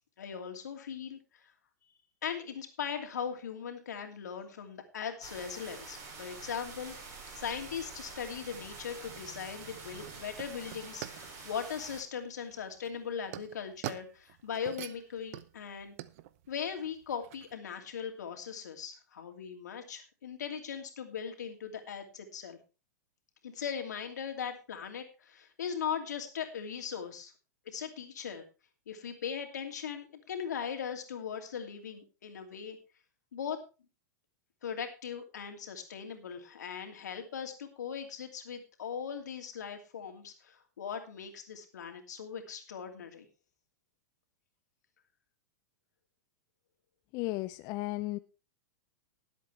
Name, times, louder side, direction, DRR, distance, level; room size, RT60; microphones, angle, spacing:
voice 1, 0.2-1.4 2.2-7.0 7.3-15.9 16.5-22.6 23.4-27.3 27.6-28.4 28.9-32.8 33.3-33.6 34.6-43.3, left 7 dB, 80° left, 4 dB, 2.7 m, -39 dB
sound 1, 5.2-12.0, right 4 dB, 40° right, 6.6 m, -47 dB
sound 2, 9.0-17.6, right 15 dB, 55° right, 0.8 m, -47 dB
voice 2, 47.1-48.2, left 19 dB, 45° left, 12 dB, 0.6 m, -34 dB
19.0 x 8.2 x 3.3 m, 0.32 s
hypercardioid pair, 115°, 9 cm